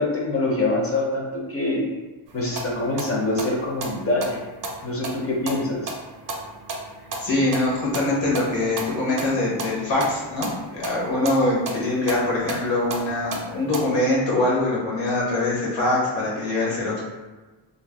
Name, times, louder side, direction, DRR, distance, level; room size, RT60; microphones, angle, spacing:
voice 1, 0.0-1.8 2.3-4.4 4.8-5.9, left 2 dB, 30° left, -2 dB, 0.5 m, -25 dB
sound 1, 2.3-13.8, right 2 dB, 50° right, 0.5 m, -35 dB
voice 2, 7.2-17.0, left 2 dB, 75° left, -5 dB, 1.1 m, -23 dB
2.5 x 2.0 x 3.3 m, 1.2 s
wide cardioid pair, 160°, 45 cm